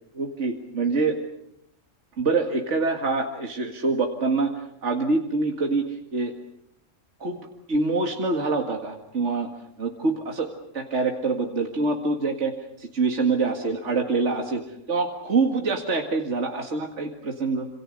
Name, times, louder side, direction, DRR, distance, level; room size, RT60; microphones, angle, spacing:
voice 1, 0.1-1.2 2.2-4.5 4.8-5.9 6.1-6.3 7.2-9.5 9.8-10.5 10.7-12.5 12.8-14.6 14.9-17.7, right 3 dB, 65° right, 2 dB, 2.4 m, -25 dB
27.5 x 27.0 x 6.6 m, 0.76 s
omnidirectional pair, 1.3 m